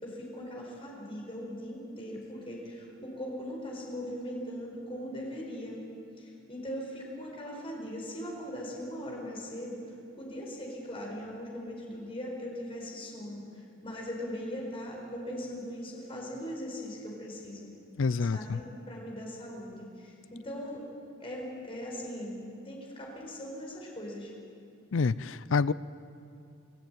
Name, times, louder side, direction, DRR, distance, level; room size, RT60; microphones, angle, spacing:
voice 1, 0.0-5.8 6.2-9.8 10.2-17.7 18.2-20.8 21.2-24.3, equal, 25° left, -2 dB, 4.5 m, -40 dB
voice 2, 18.0-18.6 24.9-25.7, left 4 dB, 70° left, 18 dB, 0.5 m, -27 dB
24.5 x 14.5 x 9.1 m, 2.6 s
head